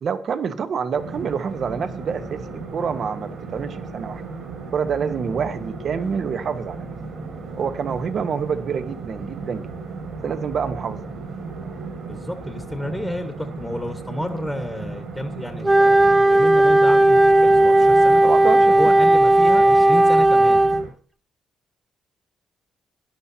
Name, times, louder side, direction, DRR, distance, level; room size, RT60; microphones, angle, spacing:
voice 1, 0.0-4.2 4.7-6.9 7.6-9.7 10.2-11.0 18.2-19.0, right 6 dB, 55° right, 11 dB, 1.0 m, -27 dB
sound 1, 0.9-20.9, right 4 dB, 70° right, 6.4 m, -35 dB
voice 2, 12.1-18.2 18.6-20.6, left 1 dB, 5° left, 6 dB, 1.3 m, -31 dB
Wind instrument woodwind instrument, 15.6-20.8, right 1 dB, 20° right, 0.9 m, -15 dB
17.5 x 11.0 x 2.8 m, 0.42 s
cardioid pair, 90°, 0 cm